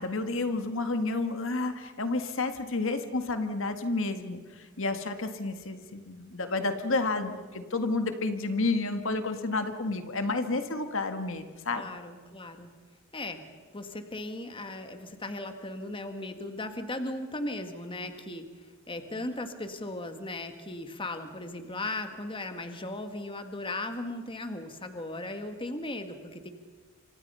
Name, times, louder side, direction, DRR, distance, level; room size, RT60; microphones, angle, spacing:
voice 1, 0.0-11.9, left 3 dB, 65° left, 7 dB, 1.8 m, -30 dB
voice 2, 11.7-12.7 13.1-13.4 13.7-26.5, left 2 dB, 25° left, 7 dB, 1.8 m, -37 dB
29.5 x 26.0 x 5.6 m, 1.5 s
head